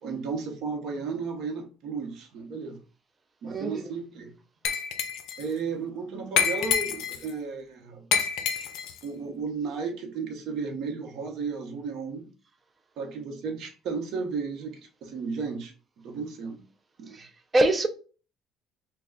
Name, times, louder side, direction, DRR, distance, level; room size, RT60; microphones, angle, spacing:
voice 1, 0.0-2.8 3.4-4.3 5.4-8.1 9.0-12.3 13.0-15.7 16.0-16.6 17.0-17.2, right 5 dB, 60° right, 0.8 m, -34 dB
voice 2, 3.5-3.8 8.5-8.7 17.1-17.9, right 2 dB, 20° right, 0.4 m, -25 dB
Glass, 4.6-5.4 6.4-7.3 8.1-9.0, left 7 dB, 75° left, 0.4 m, -27 dB
3.2 x 2.2 x 3.7 m
cardioid pair, 150°, 0 cm